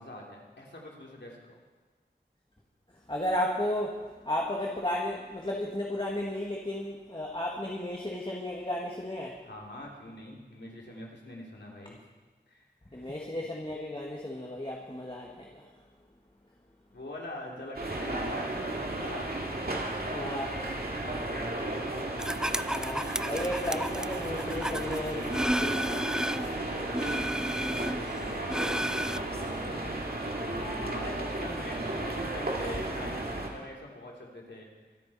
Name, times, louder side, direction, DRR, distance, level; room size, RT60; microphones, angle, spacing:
voice 1, 0.0-1.6 9.4-12.0 12.5-13.1 16.9-19.3 20.6-21.8 26.8-34.7, left 1 dB, 80° left, -2 dB, 3.2 m, -44 dB
voice 2, 2.9-9.4 12.9-15.8 20.1-20.8 22.7-26.0, left 1 dB, 30° left, -2 dB, 1.9 m, -34 dB
sound 1, 17.7-33.5, right 2 dB, 60° right, 2.2 m, -34 dB
sound 2, 22.2-26.5 26.9-29.2, equal, 5° right, 0.4 m, -32 dB
24.5 x 9.5 x 4.3 m, 1.4 s
wide cardioid pair, 40°, 18 cm